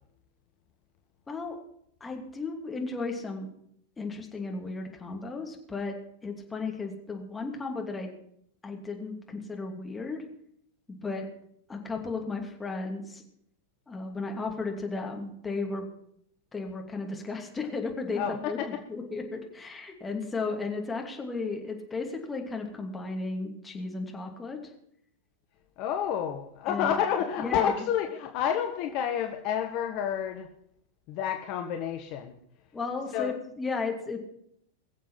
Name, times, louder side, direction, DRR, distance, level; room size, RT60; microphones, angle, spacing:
voice 1, 1.3-1.6 2.0-3.5 4.0-5.9 6.2-8.1 8.6-10.2 10.9-11.3 11.7-13.2 13.9-15.9 16.5-24.7 26.7-26.9 27.4-27.8 32.7-34.2, left 3 dB, 15° left, 2 dB, 2.7 m, -34 dB
voice 2, 18.2-18.7 25.8-30.5 31.1-32.3 33.1-33.3, left 9 dB, 40° left, 5 dB, 1.1 m, -29 dB
22.0 x 7.4 x 5.7 m, 0.70 s
figure-of-eight pair, 90°, 0 cm